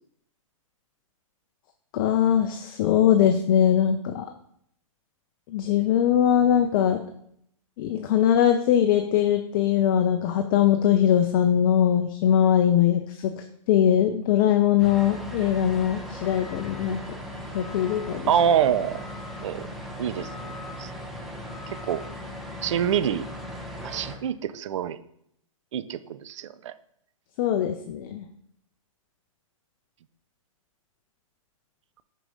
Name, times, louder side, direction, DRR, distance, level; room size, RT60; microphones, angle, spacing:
voice 1, 1.9-4.3 5.5-7.0 7.8-17.0 17.5-18.3 27.4-28.3, left 10 dB, 40° left, 6 dB, 0.5 m, -21 dB
sound 1, 14.8-24.2, equal, ahead, 1.0 m, -38 dB
voice 2, 18.3-19.0 19.4-19.7 20.0-20.9 21.9-22.0 22.6-23.2 23.8-25.0 25.7-26.7, right 9 dB, 60° right, 13 dB, 0.5 m, -26 dB
6.0 x 4.7 x 5.3 m, 0.72 s
hypercardioid pair, 125°, 18 cm